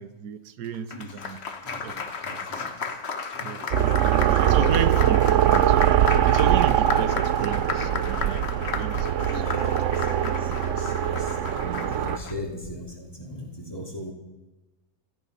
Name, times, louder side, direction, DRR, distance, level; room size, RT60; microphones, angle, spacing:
voice 1, 0.0-1.4 1.8-1.9 3.4-8.4 8.7-9.4 10.6-10.7, right 9 dB, 85° right, 13 dB, 1.4 m, -33 dB
Applause, 0.6-12.3, left 5 dB, 45° left, 1.3 m, -34 dB
voice 2, 0.9-1.3 1.6-2.9 3.3-3.6 3.9-4.1 7.1-7.2 9.2-14.1, left 1 dB, 15° left, 0 dB, 3.1 m, -39 dB
sound 1, 3.7-12.2, right 11 dB, 60° right, 0.9 m, -22 dB
16.5 x 14.5 x 5.5 m, 1.1 s
omnidirectional pair, 1.7 m